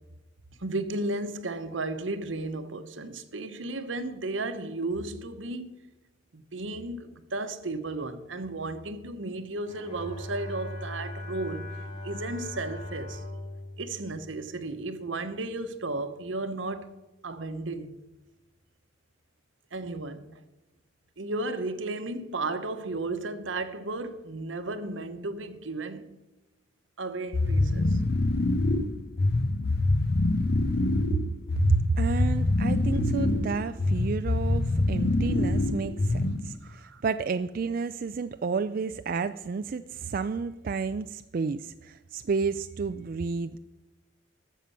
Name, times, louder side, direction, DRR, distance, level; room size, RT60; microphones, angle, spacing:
voice 1, 0.6-5.8 6.3-11.7 12.0-13.2 13.8-17.0 17.2-18.0 19.7-20.3 21.2-26.2 27.0-28.0 36.6-37.0, right 2 dB, 80° right, 1.0 m, -34 dB
Bowed string instrument, 9.6-15.0, left 1 dB, 25° left, 3.1 m, -40 dB
sound 1, 27.3-36.6, left 2 dB, 55° left, 0.7 m, -25 dB
voice 2, 31.6-43.6, right 5 dB, 50° right, 0.4 m, -30 dB
12.5 x 7.5 x 5.6 m
head